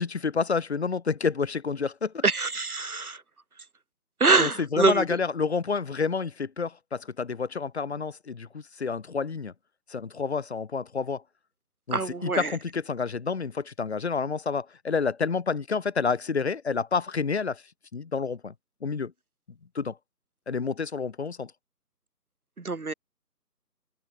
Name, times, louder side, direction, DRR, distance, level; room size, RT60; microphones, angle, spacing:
voice 1, 0.0-2.2 4.4-9.5 9.9-11.2 11.9-17.6 17.9-18.5 18.8-19.1 19.8-20.0 20.5-21.5, left 5 dB, 40° left, 3.7 m, -29 dB
voice 2, 2.2-3.2 4.2-5.2 11.9-12.6 22.6-22.9, right 3 dB, 60° right, 3.6 m, -24 dB
figure-of-eight pair, 155°, 49 cm